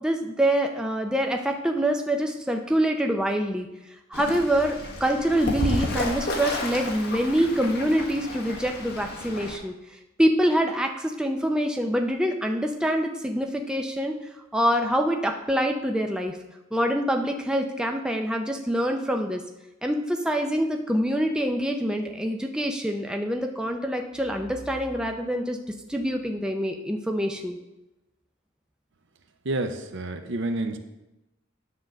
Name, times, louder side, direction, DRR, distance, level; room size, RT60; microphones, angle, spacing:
voice 1, 0.0-3.7 4.1-9.7 10.2-14.1 14.5-16.4 16.7-19.4 19.8-25.6 25.9-27.6, equal, 5° right, 2 dB, 0.5 m, -25 dB
Fowl / Bird, 4.1-9.6, left 2 dB, 55° left, 1.4 m, -32 dB
voice 2, 29.4-30.8, right 2 dB, 65° right, 7 dB, 0.7 m, -29 dB
9.7 x 3.7 x 6.5 m, 0.97 s
head